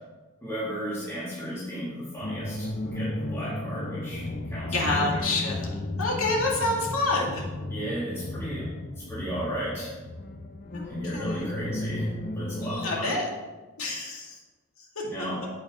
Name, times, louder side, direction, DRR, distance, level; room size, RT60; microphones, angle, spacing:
voice 1, 0.4-4.7 5.1-5.2 7.7-10.0 10.8-13.1 15.1-15.4, equal, 10° left, -11 dB, 3.0 m, -35 dB
sound 1, 2.2-13.0, left 1 dB, 40° left, 0.8 m, -34 dB
voice 2, 4.7-7.4 10.7-11.5 12.6-13.3 13.8-14.4 15.0-15.1, left 2 dB, 70° left, -2 dB, 2.3 m, -28 dB
8.8 x 8.8 x 3.7 m, 1.2 s
head